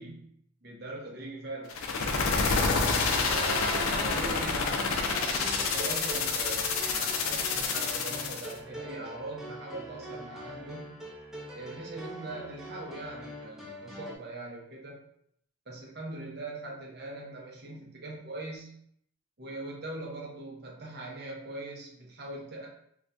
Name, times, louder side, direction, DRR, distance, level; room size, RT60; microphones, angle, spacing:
voice 1, 0.6-1.8 3.1-11.0 11.5-15.0 15.7-18.7 19.4-22.7, right 2 dB, 45° right, -2 dB, 0.7 m, -41 dB
sound 1, 1.7-8.5, left 4 dB, 75° left, 0.4 m, -28 dB
sound 2, 4.6-14.2, equal, 5° right, 0.3 m, -43 dB
3.9 x 2.4 x 2.2 m, 0.69 s
head